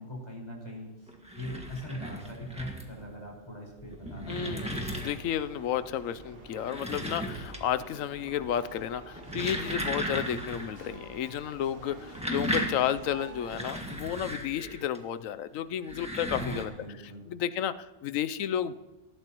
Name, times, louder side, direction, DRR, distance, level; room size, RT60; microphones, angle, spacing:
voice 1, 0.0-4.6 16.3-17.3, left 1 dB, 20° left, -2 dB, 5.1 m, -41 dB
sound 1, 1.1-3.1 3.7-5.4 6.4-7.9 8.1-8.6 9.1-10.7 11.0-11.1 11.9-15.0 15.7-16.6, equal, 5° right, 1.6 m, -36 dB
voice 2, 4.3-16.7 17.0-18.7, left 10 dB, 70° left, 13 dB, 1.0 m, -32 dB
sound 2, 4.6-13.8, right 2 dB, 40° right, 2.1 m, -48 dB
19.0 x 14.0 x 3.0 m, 1.2 s
omnidirectional pair, 1.5 m